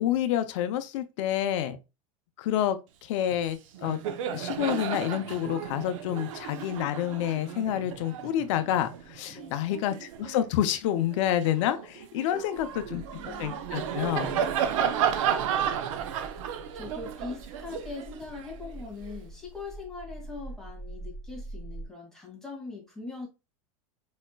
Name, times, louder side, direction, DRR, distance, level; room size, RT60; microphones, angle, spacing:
voice 1, 0.0-1.8 2.4-4.0 4.3-13.0 13.4-14.4, left 11 dB, 65° left, 0.7 m, -28 dB
Laughter, 3.3-3.5 3.7-10.5 11.0-19.2, right 9 dB, 75° right, 0.8 m, -33 dB
voice 2, 9.3-9.7 12.3-13.6 14.6-15.5 16.4-23.3, left 4 dB, 5° left, 2.2 m, -42 dB
sound 1, 12.6-21.8, right 2 dB, 15° right, 2.7 m, -45 dB
4.9 x 4.2 x 2.3 m
supercardioid pair, 130°, 17 cm